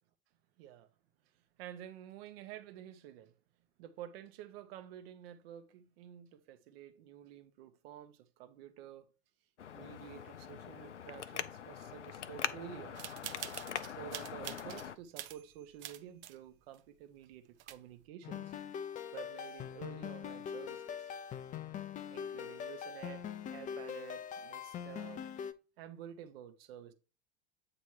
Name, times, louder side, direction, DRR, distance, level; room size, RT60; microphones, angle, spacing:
voice 1, 0.6-0.9 1.6-3.3 3.8-9.1 9.7-13.1 13.9-18.5 19.1-21.1 22.1-25.3 25.8-26.9, right 10 dB, 55° right, 0.9 m, -50 dB
Traffic noise roadway noise, 9.6-15.0, left 8 dB, 90° left, 0.5 m, -43 dB
sound 1, 12.9-14.9 15.2-16.4 16.7-16.8 17.3-17.4 17.6-18.0, right 13 dB, 35° right, 0.5 m, -46 dB
sound 2, 18.2-25.5, left 8 dB, 25° left, 0.5 m, -42 dB
8.2 x 3.0 x 4.5 m
figure-of-eight pair, 85°, 35 cm